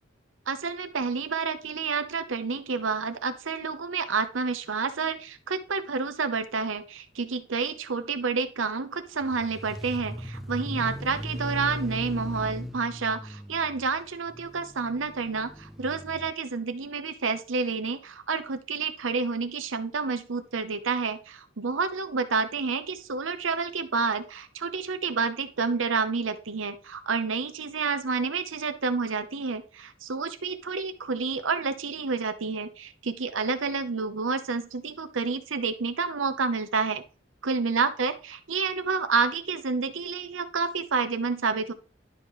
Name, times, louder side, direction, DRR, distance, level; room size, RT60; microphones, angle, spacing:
voice 1, 0.5-37.0 37.4-41.7, right 4 dB, 85° right, 10 dB, 0.8 m, -29 dB
sound 1, 9.2-16.3, equal, ahead, 0.5 m, -38 dB
11.5 x 5.6 x 3.1 m, 0.36 s
head